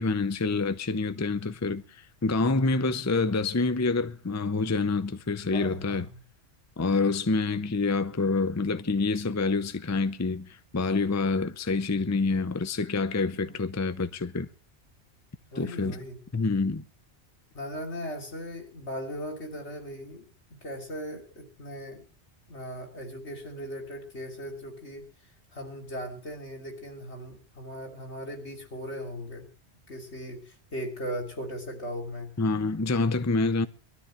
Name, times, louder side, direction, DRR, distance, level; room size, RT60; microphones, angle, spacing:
voice 1, 0.0-6.1 6.8-14.5 15.6-16.0 16.3-16.8 32.4-33.7, left 3 dB, 20° left, 0.6 m, -27 dB
voice 2, 5.5-6.2 13.3-13.6 15.5-16.2 17.5-20.3 20.6-22.1 22.5-25.1 25.5-29.5 29.9-32.3, equal, 75° left, 3.5 m, -38 dB
22.5 x 13.0 x 3.2 m
omnidirectional pair, 1.2 m